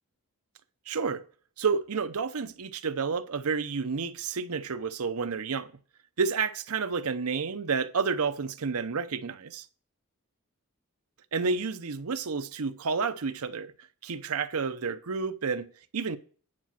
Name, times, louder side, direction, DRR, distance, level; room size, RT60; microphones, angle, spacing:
voice 1, 0.9-1.2 1.6-5.7 6.2-9.7 11.3-13.7 14.0-16.2, right 5 dB, 85° right, 0.7 m, -30 dB
9.8 x 5.0 x 5.9 m
head